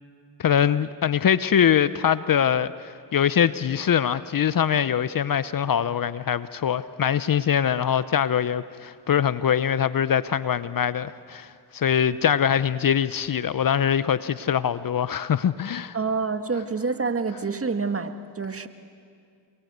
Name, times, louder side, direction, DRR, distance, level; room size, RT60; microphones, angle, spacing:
voice 1, 0.4-16.0, left 8 dB, 45° left, 0.8 m, -23 dB
voice 2, 15.9-18.7, right 4 dB, 30° right, 1.8 m, -27 dB
29.0 x 22.5 x 8.2 m
supercardioid pair, 55°, 47 cm